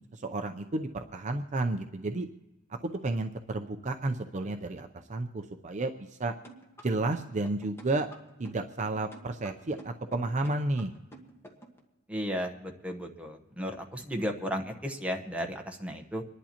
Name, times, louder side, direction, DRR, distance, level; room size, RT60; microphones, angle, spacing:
voice 1, 0.1-2.3 2.7-6.3 6.8-8.1 8.4-10.9, right 2 dB, 35° right, 6 dB, 0.6 m, -32 dB
sound 1, 6.4-11.8, right 1 dB, 15° left, 1.4 m, -50 dB
voice 2, 12.1-16.2, equal, 5° right, 3 dB, 1.0 m, -34 dB
27.5 x 11.0 x 2.9 m, 1.1 s
head